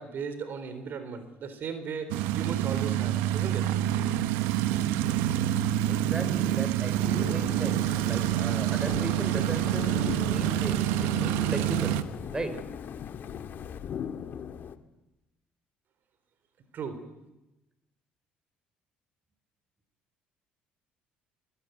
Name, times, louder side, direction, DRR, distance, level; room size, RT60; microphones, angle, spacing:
voice 1, 0.0-3.6 16.7-17.0, right 6 dB, 55° right, 10 dB, 4.0 m, -36 dB
sound 1, 2.1-12.0, right 13 dB, 85° right, 1.1 m, -27 dB
voice 2, 5.9-9.9 10.3-12.0 12.3-12.6, right 2 dB, 20° right, 11 dB, 3.7 m, -36 dB
sound 2, 7.0-14.8, left 8 dB, 55° left, 1.7 m, -38 dB
21.5 x 21.0 x 9.4 m, 0.98 s
supercardioid pair, 75°, 4 cm